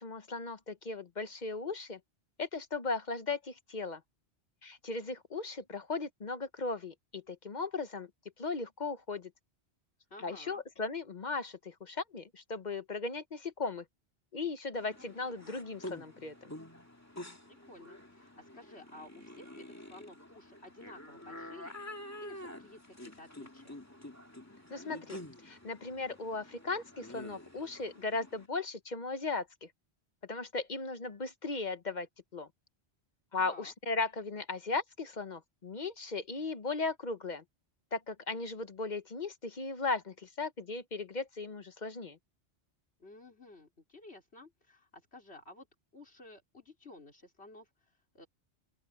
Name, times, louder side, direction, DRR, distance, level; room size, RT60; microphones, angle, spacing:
voice 1, 0.0-2.0 2.4-4.0 4.6-8.1 8.4-9.3 10.2-13.8 14.3-16.5 24.7-29.7 30.3-32.1 32.3-32.5 33.3-37.4 37.9-42.2, left 3 dB, 45° left, 1.1 m, -37 dB
voice 2, 10.1-10.6 17.5-23.8 33.4-33.7 43.0-45.7 45.9-48.3, left 2 dB, 75° left, 4.7 m, -53 dB
sound 1, 14.7-28.5, left 1 dB, 15° left, 2.4 m, -48 dB
open air
omnidirectional pair, 1.1 m